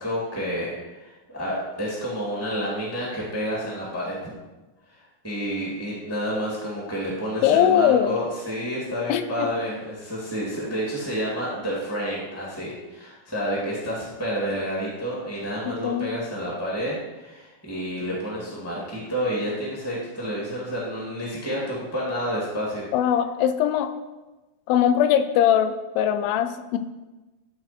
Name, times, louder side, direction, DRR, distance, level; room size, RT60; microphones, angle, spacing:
voice 1, 0.0-4.2 4.9-22.9, equal, 5° left, -5 dB, 1.2 m, -29 dB
voice 2, 7.4-8.2 9.1-9.5 15.8-16.1 22.9-23.9 24.7-26.8, left 9 dB, 80° left, 9 dB, 2.3 m, -21 dB
12.5 x 4.2 x 4.4 m, 1.1 s
omnidirectional pair, 4.3 m